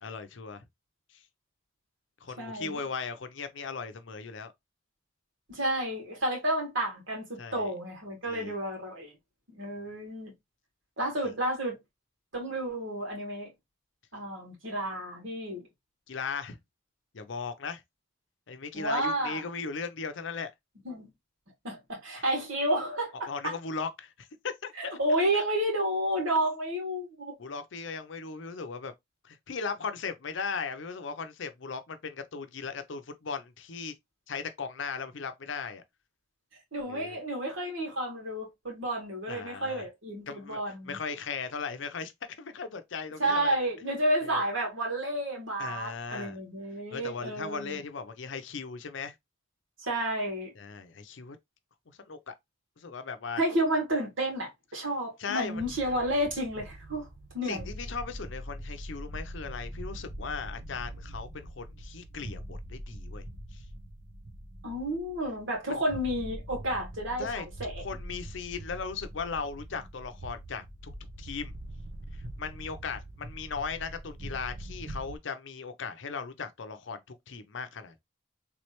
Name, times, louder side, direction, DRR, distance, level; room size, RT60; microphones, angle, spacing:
voice 1, 0.0-0.6 1.1-1.2 2.2-4.5 7.4-7.7 8.3-8.6 11.2-11.3 16.1-16.6 17.1-17.8 18.5-20.5 23.3-24.9 25.3-25.4 27.4-28.9 29.2-33.9 34.3-35.8 36.9-37.2 39.3-39.8 40.3-42.1 42.4-43.6 44.2-44.4 45.6-46.4 46.9-49.1 50.6-51.4 51.9-52.3 52.8-53.4 55.2-55.6 57.4-63.2 63.5-63.6 65.7-65.8 67.2-67.5 67.8-70.9 71.2-71.5 72.4-78.0, left 5 dB, 70° left, 0.6 m, -37 dB
voice 2, 2.4-2.8 5.5-9.1 9.5-10.3 11.0-11.8 12.3-13.5 14.1-15.7 18.7-19.4 20.8-21.1 21.6-23.5 24.8-27.3 36.7-41.0 43.2-47.8 49.8-50.5 53.4-57.1 57.3-57.7 64.6-67.8, right 1 dB, 75° right, 2.2 m, -31 dB
sound 1, 55.4-75.2, right 1 dB, 60° right, 0.8 m, -43 dB
3.4 x 3.2 x 3.0 m
head